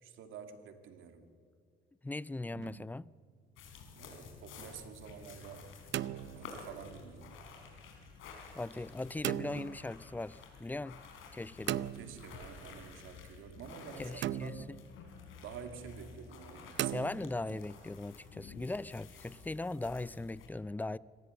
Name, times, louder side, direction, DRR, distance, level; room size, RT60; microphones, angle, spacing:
voice 1, 0.0-1.3 3.9-5.8 6.4-7.4 11.9-14.7 15.4-17.7, right 7 dB, 85° right, 2.0 m, -49 dB
voice 2, 2.0-3.1 8.5-11.0 11.3-11.9 14.0-14.8 16.9-21.0, left 2 dB, 10° left, 0.4 m, -39 dB
sound 1, 2.5-3.1 5.6-6.9 9.2-9.8 11.7-12.6 14.2-14.9 16.8-17.7, right 12 dB, 70° right, 0.6 m, -38 dB
sound 2, 3.6-20.5, left 4 dB, 90° left, 4.5 m, -52 dB
25.0 x 17.5 x 7.0 m
cardioid pair, 90°, 20 cm